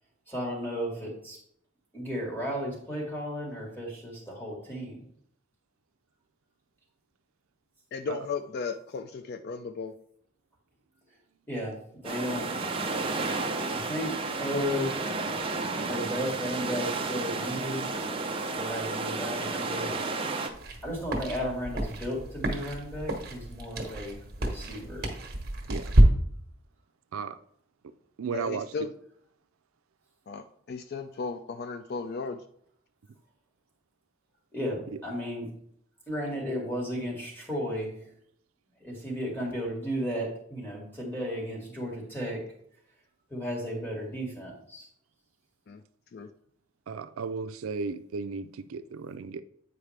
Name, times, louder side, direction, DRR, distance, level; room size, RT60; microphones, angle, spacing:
voice 1, 0.3-1.4 1.9-5.0 11.5-11.8 12.0-12.5 13.7-14.9 15.8-17.9 18.5-20.0 20.8-25.1 34.5-35.5 36.1-37.9 38.8-42.4 43.3-44.9, equal, 10° left, 2.1 m, -34 dB
voice 2, 7.9-9.9 28.3-28.9 30.3-32.4 45.7-45.8 46.1-46.3, left 5 dB, 50° left, 0.3 m, -35 dB
sound 1, 12.0-20.5, right 3 dB, 25° right, 0.6 m, -32 dB
sound 2, 20.5-26.0, right 1 dB, 45° right, 1.3 m, -28 dB
voice 3, 28.2-28.7 46.9-49.4, right 5 dB, 85° right, 0.4 m, -35 dB
8.8 x 4.8 x 3.3 m
head